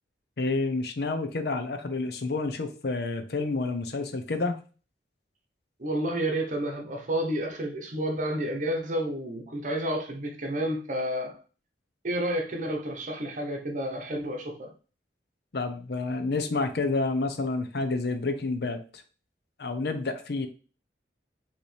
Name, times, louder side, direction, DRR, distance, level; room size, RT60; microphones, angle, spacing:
voice 1, 0.4-4.6 15.5-19.0 19.6-20.5, left 3 dB, 65° left, 0.6 m, -29 dB
voice 2, 5.8-11.3 12.0-14.7, right 1 dB, 45° right, 0.9 m, -30 dB
5.1 x 3.0 x 3.3 m
head